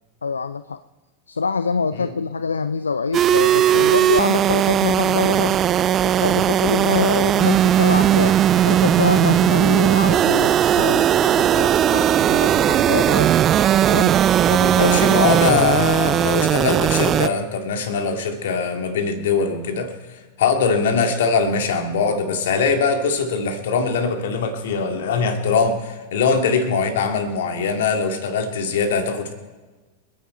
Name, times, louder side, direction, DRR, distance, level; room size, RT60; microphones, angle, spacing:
voice 1, 0.2-0.8 1.3-5.6 6.0-13.3 13.9-14.2 14.5-16.0, left 5 dB, 75° left, 13 dB, 0.5 m, -25 dB
sound 1, 3.1-17.3, right 10 dB, 30° right, 0.4 m, -17 dB
voice 2, 14.7-19.9 20.4-29.3, left 5 dB, 60° left, 6 dB, 2.1 m, -22 dB
28.5 x 9.6 x 4.5 m, 1.3 s
figure-of-eight pair, 90°, 0 cm